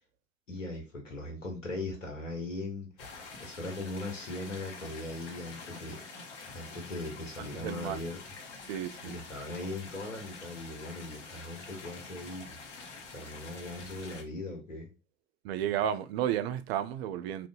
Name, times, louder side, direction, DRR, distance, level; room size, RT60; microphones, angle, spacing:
voice 1, 0.5-2.9 3.4-6.0 6.5-8.2 9.0-12.6 13.1-14.9, left 2 dB, 80° left, 1.2 m, -39 dB
sound 1, 3.0-14.2, left 4 dB, 65° left, 1.0 m, -47 dB
voice 2, 7.4-8.0 8.7-9.2 15.4-17.5, right 10 dB, 55° right, 0.4 m, -32 dB
2.6 x 2.4 x 3.5 m
figure-of-eight pair, 75°, 37 cm